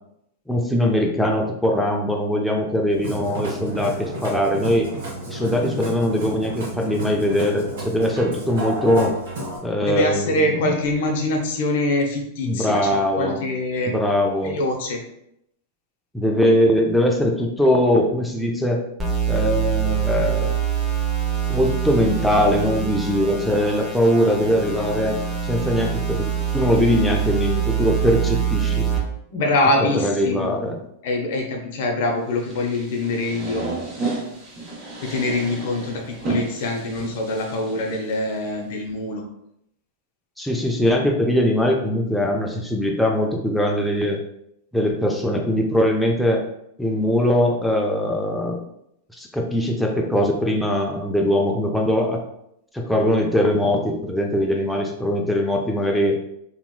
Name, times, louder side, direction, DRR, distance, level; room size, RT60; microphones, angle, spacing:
voice 1, 0.5-4.9 5.3-9.2 9.6-10.5 12.4-13.4 13.9-14.6 16.1-18.8 19.3-20.6 21.5-25.2 25.4-28.9 29.8-30.8 40.4-44.2 44.7-46.4 46.8-48.6 49.2-52.2 52.7-56.2, left 1 dB, ahead, -1 dB, 0.4 m, -21 dB
Musical instrument, 2.9-9.6, right 1 dB, 80° right, 1.4 m, -32 dB
voice 2, 9.8-13.9 14.4-15.0 29.3-30.6 31.0-33.6 35.0-39.3, left 2 dB, 65° left, 2 dB, 0.7 m, -24 dB
sound 1, 19.0-29.0, right 8 dB, 15° right, 0.8 m, -24 dB
sound 2, 32.4-38.5, right 3 dB, 35° right, 1.1 m, -32 dB
2.9 x 2.9 x 2.2 m, 0.76 s
hypercardioid pair, 120°, 0 cm